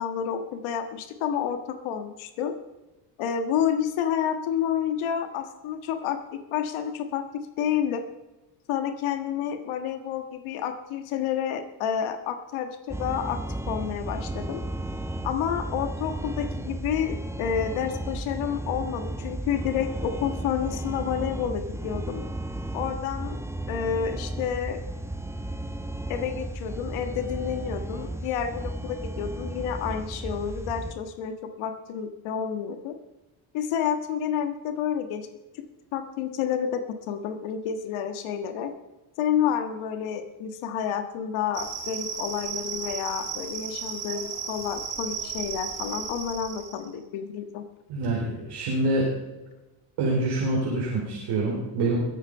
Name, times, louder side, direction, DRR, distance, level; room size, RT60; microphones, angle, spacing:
voice 1, 0.0-2.5 3.2-7.2 7.6-8.0 8.7-13.4 13.7-14.6 15.2-22.2 22.7-23.4 23.7-24.8 26.1-32.9 33.5-35.3 35.9-38.7 39.2-47.6, left 8 dB, 75° left, 7 dB, 1.7 m, -29 dB
sound 1, 12.9-30.9, right 1 dB, 5° right, 1.3 m, -34 dB
sound 2, 41.5-46.9, right 6 dB, 40° right, 5.0 m, -35 dB
voice 2, 47.9-49.1 50.0-52.0, right 2 dB, 75° right, -4 dB, 4.8 m, -26 dB
21.0 x 8.8 x 5.5 m, 1.1 s
supercardioid pair, 65°, 50 cm